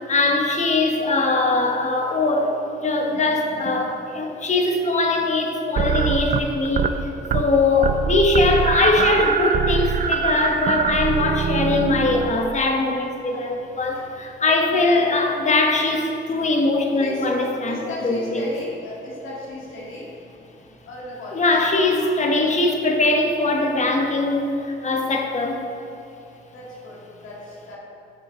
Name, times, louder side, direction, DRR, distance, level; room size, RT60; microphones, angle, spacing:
voice 1, 0.1-2.5 2.8-6.9 7.3-18.4 21.3-25.6, left 2 dB, 35° left, 2 dB, 1.2 m, -21 dB
sound 1, 5.8-7.0 7.2-7.6 7.8-12.6, right 6 dB, 45° right, 0.5 m, -23 dB
voice 2, 14.9-15.4 17.0-20.1 20.8-21.5 26.5-27.8, left 1 dB, 80° left, -4 dB, 1.9 m, -36 dB
6.8 x 6.2 x 4.9 m, 2.7 s
cardioid pair, 90°, 20 cm